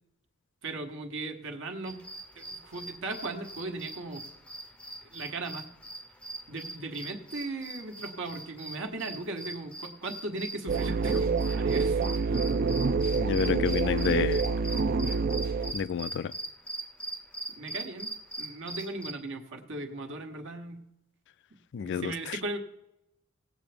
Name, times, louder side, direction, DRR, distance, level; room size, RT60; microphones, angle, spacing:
voice 1, 0.6-2.0 2.3-4.2 5.1-5.7 6.5-12.4 17.6-18.1 18.4-20.8 21.8-22.6, right 2 dB, 65° right, 1.3 m, -37 dB
sound 1, 1.9-19.1, right 1 dB, 5° left, 0.6 m, -41 dB
sound 2, 10.7-15.7, right 4 dB, 45° right, 0.5 m, -27 dB
voice 2, 13.1-14.4 15.7-16.3 21.7-22.4, left 7 dB, 60° left, 0.4 m, -29 dB
18.0 x 7.8 x 3.4 m
head